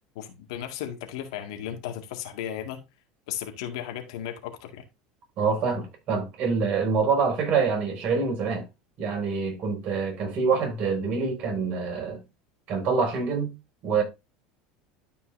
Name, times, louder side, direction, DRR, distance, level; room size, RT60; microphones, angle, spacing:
voice 1, 0.2-2.8 3.3-4.8, left 10 dB, 80° left, 2.0 m, -35 dB
voice 2, 5.4-8.6 9.0-12.2 12.7-13.5 13.8-14.0, right 5 dB, 50° right, 5.1 m, -26 dB
12.5 x 5.5 x 2.6 m
supercardioid pair, 120°, 3 cm